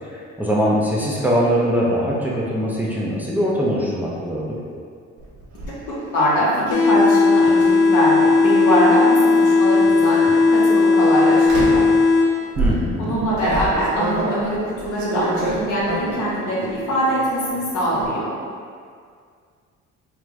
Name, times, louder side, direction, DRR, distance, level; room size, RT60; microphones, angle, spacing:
voice 1, 0.0-4.5 12.6-13.2, equal, 5° right, -6 dB, 0.4 m, -22 dB
sound 1, 5.2-5.7 7.5-7.7 8.5-9.3 10.0-10.3 11.5-12.0 12.6-16.3 16.7-17.2 17.5-18.1, right 2 dB, 75° right, 1.0 m, -27 dB
voice 2, 6.1-11.8 13.0-18.3, equal, 85° left, -7 dB, 1.3 m, -22 dB
sound 2, 6.7-12.7, left 4 dB, 55° left, 0.6 m, -16 dB
4.6 x 2.4 x 3.1 m, 2.1 s
cardioid pair, 140°, 29 cm